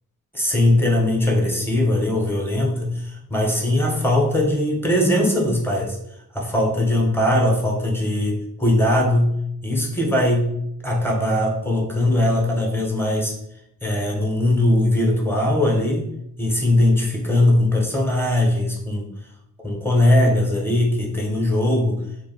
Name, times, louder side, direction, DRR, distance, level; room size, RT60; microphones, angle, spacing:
voice 1, 0.3-6.0 6.3-10.6 10.8-13.3 13.8-16.1 16.4-19.1 19.6-22.0, left 1 dB, 5° left, -2 dB, 0.5 m, -20 dB
2.1 x 2.0 x 3.4 m, 0.78 s
wide cardioid pair, 85°, 37 cm